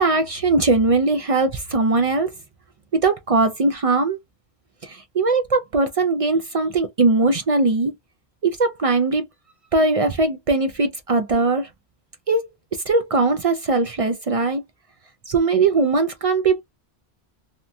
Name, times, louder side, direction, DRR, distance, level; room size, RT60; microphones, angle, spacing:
voice 1, 0.0-2.3 2.9-4.2 4.8-7.9 8.4-9.2 9.7-11.7 12.3-12.5 12.9-14.6 15.3-16.6, right 3 dB, 60° right, 0.3 m, -20 dB
2.8 x 2.2 x 2.5 m
omnidirectional pair, 1.1 m